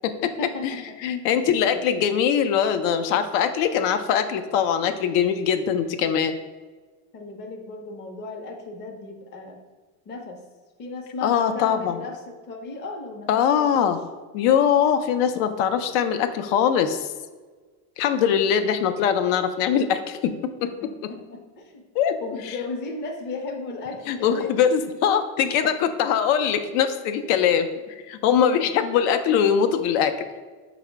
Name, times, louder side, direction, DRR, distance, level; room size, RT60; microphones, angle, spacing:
voice 1, 0.2-1.0 1.6-1.8 7.1-9.6 10.1-10.4 10.8-13.9 20.8-21.9 22.2-24.6 28.9-29.1, left 3 dB, 30° left, 3 dB, 0.5 m, -35 dB
voice 2, 1.0-6.3 11.2-12.0 13.3-14.0 14.3-17.1 18.0-20.3 22.0-22.2 24.1-27.7 28.1-30.2, left 8 dB, 90° left, 8 dB, 0.5 m, -22 dB
4.8 x 2.0 x 4.4 m, 1.4 s
cardioid pair, 150°, 39 cm